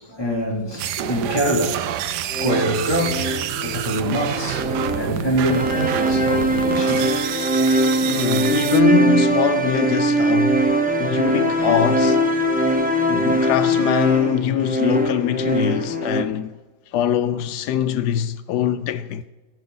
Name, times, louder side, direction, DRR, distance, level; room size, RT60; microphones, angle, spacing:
voice 1, 0.0-7.2 13.1-13.5, equal, 15° left, 2.5 m, -25 dB
sound 1, 0.8-8.8, right 10 dB, 90° right, 1.2 m, -28 dB
sound 2, 2.3-16.2, right 1 dB, 5° right, 0.8 m, -21 dB
voice 2, 7.6-10.7 11.0-12.2 13.1-16.6 16.9-19.2, left 10 dB, 85° left, 1.2 m, -23 dB
19.0 x 6.9 x 3.9 m
omnidirectional pair, 1.7 m